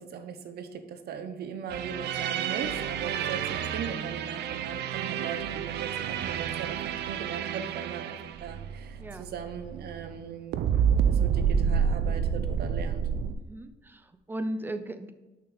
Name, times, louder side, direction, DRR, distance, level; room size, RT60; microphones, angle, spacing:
voice 1, 0.0-13.1, right 7 dB, 70° right, 8 dB, 0.8 m, -39 dB
sound 1, 1.7-10.3 10.5-13.3, right 7 dB, 90° right, 0.5 m, -29 dB
voice 2, 9.0-9.3 13.4-15.1, right 1 dB, 10° right, 9 dB, 0.5 m, -36 dB
6.2 x 5.6 x 4.1 m, 1.1 s
cardioid pair, 140°, 17 cm